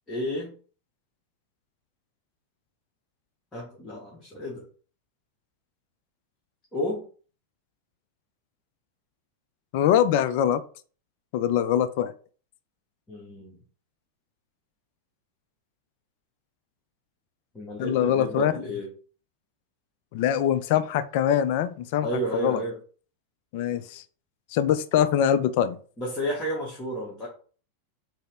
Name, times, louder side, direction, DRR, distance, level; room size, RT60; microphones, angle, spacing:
voice 1, 0.1-0.5 3.5-4.7 6.7-7.1 13.1-13.5 17.5-18.9 22.0-22.8 26.0-27.3, equal, 15° left, -5 dB, 1.0 m, -31 dB
voice 2, 9.7-10.6 11.3-12.1 17.8-18.5 20.1-22.1 22.3-22.6 23.5-24.0 24.5-25.8, left 10 dB, 50° left, 12 dB, 0.3 m, -23 dB
4.1 x 2.0 x 3.3 m, 0.41 s
figure-of-eight pair, 90°, 0 cm